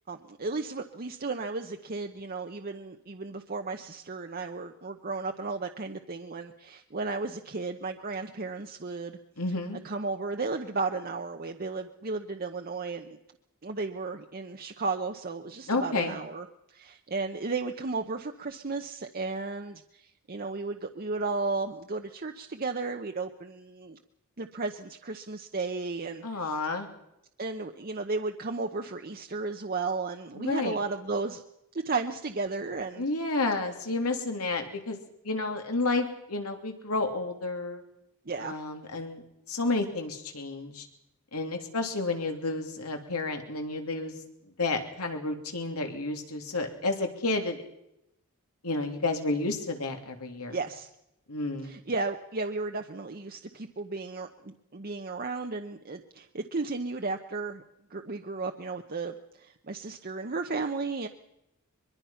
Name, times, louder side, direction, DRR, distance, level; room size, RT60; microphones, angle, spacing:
voice 1, 0.1-9.2 9.8-13.2 13.6-24.0 24.4-26.6 27.4-31.4 31.7-33.0 38.3-38.6 50.5-50.9 51.6-57.6 57.9-61.1, right 3 dB, 40° right, 5 dB, 0.9 m, -34 dB
voice 2, 9.4-9.8 15.7-16.2 26.2-26.9 30.3-30.8 33.0-35.0 35.2-37.8 38.4-39.2 39.5-40.9 41.3-44.1 44.6-47.6 48.6-50.6 51.3-51.7, left 3 dB, 85° left, 4 dB, 3.2 m, -31 dB
23.0 x 22.5 x 5.8 m, 0.84 s
head